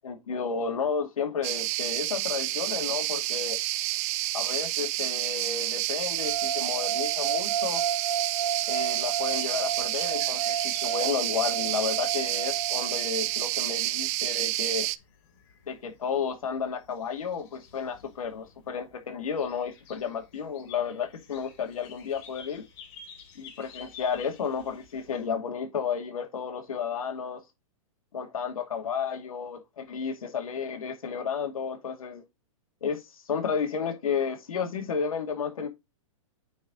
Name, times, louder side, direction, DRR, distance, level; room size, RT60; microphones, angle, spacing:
voice 1, 0.0-3.6 4.3-7.8 8.7-14.9 15.7-22.6 23.3-27.4 28.1-32.2 32.8-35.7, left 6 dB, 85° left, 2.7 m, -32 dB
sound 1, 1.4-15.0, right 18 dB, 30° right, 0.3 m, -29 dB
sound 2, 6.2-13.3, right 7 dB, 75° right, 1.8 m, -32 dB
sound 3, 9.0-25.3, left 7 dB, 45° left, 3.7 m, -51 dB
9.2 x 4.6 x 3.9 m
hypercardioid pair, 155°, 18 cm